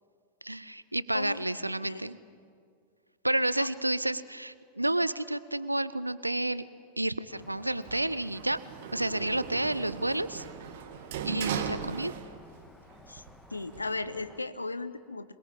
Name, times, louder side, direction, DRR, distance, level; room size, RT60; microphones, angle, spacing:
voice 1, 0.4-2.2 3.2-6.7 7.0-8.6 8.9-10.4 11.2-12.1, right 1 dB, 85° right, 17 dB, 0.8 m, -30 dB
voice 2, 1.1-1.5 1.8-2.0 3.6-3.7 13.1-13.2 13.5-15.3, left 3 dB, 80° left, 13 dB, 1.0 m, -36 dB
sound 1, 7.3-14.4, left 2 dB, 10° left, 1.5 m, -56 dB
Sliding door, 7.8-12.7 13.0-13.9, right 8 dB, 55° right, 1.9 m, -38 dB
26.0 x 22.0 x 8.8 m, 2.2 s
figure-of-eight pair, 90°, 0 cm